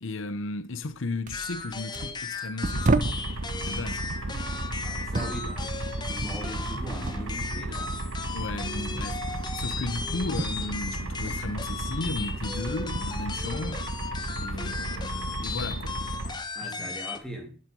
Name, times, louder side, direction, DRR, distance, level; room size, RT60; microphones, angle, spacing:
voice 1, 0.0-3.2 3.6-4.1 8.3-14.0 14.3-16.0 16.6-16.9, left 3 dB, 70° left, 0.8 m, -35 dB
sound 1, 0.8-1.0 1.3-3.3 3.9-7.3 7.6-11.4 11.7-14.0 14.4-15.2 15.9-16.1, right 2 dB, 40° right, 0.8 m, -34 dB
sound 2, 1.3-17.2, left 4 dB, 20° left, 1.1 m, -36 dB
sound 3, 2.6-16.3, right 1 dB, 90° right, 1.8 m, -34 dB
voice 2, 4.8-5.8 6.0-8.1 16.5-17.6, right 1 dB, 5° left, 3.0 m, -41 dB
11.5 x 7.6 x 5.3 m
head